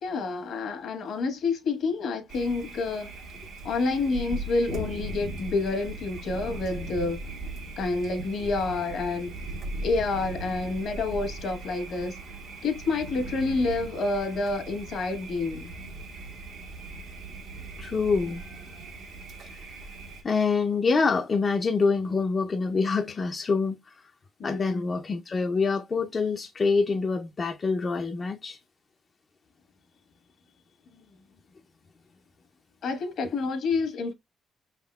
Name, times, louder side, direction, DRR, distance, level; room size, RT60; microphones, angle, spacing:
voice 1, 0.0-3.1 3.6-7.2 7.8-9.3 9.8-12.2 12.6-15.7 24.4-24.9 32.8-34.1, left 3 dB, 70° left, 1.1 m, -28 dB
Thunder, 2.3-20.2, right 2 dB, 75° right, 1.1 m, -39 dB
voice 2, 17.8-18.6 19.4-19.6 20.2-24.1 24.4-28.6, left 4 dB, 40° left, 0.5 m, -26 dB
5.6 x 3.6 x 2.2 m
cardioid pair, 90°, 0 cm